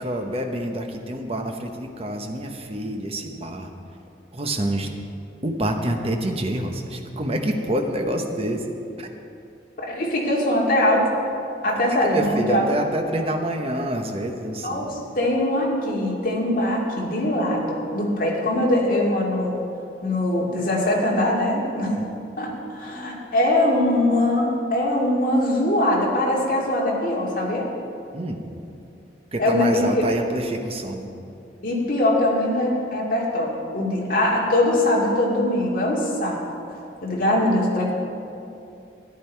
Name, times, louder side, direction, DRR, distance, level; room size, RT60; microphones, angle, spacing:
voice 1, 0.0-3.7 4.3-5.0 5.4-8.7 9.0-9.1 11.8-14.9 28.1-28.4 29.3-31.1, right 1 dB, 30° right, 4 dB, 0.9 m, -27 dB
voice 2, 9.8-11.1 11.6-12.6 14.6-19.6 20.0-21.9 22.4-27.7 29.4-30.1 31.6-36.4 37.0-37.9, left 1 dB, 45° left, -3 dB, 2.3 m, -22 dB
14.0 x 10.5 x 4.6 m, 2.6 s
head